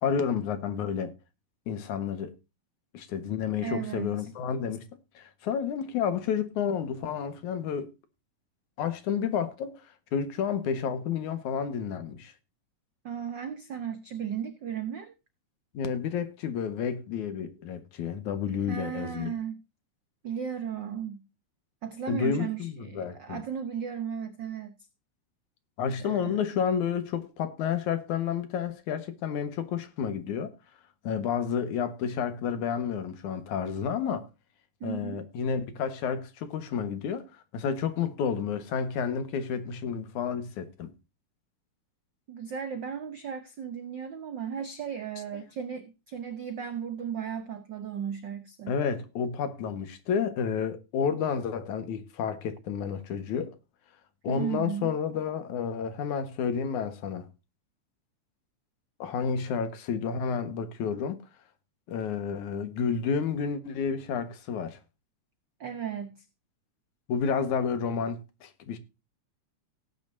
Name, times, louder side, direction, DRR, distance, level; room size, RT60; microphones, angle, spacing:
voice 1, 0.0-1.1 1.7-2.3 2.9-4.9 5.2-7.9 8.8-9.8 10.1-12.3 15.7-19.3 22.1-23.4 25.8-30.5 31.0-34.3 34.8-40.9 45.2-45.3 48.7-53.5 54.2-57.3 59.0-61.2 61.9-64.8 67.1-68.8, left 7 dB, 70° left, 2.8 m, -30 dB
voice 2, 3.6-4.3 13.0-15.1 18.6-19.6 20.2-21.2 21.8-24.8 26.0-26.5 34.8-35.2 42.3-48.8 54.3-54.9 65.6-66.2, right 8 dB, 85° right, 1.0 m, -35 dB
17.5 x 9.1 x 2.6 m
omnidirectional pair, 3.6 m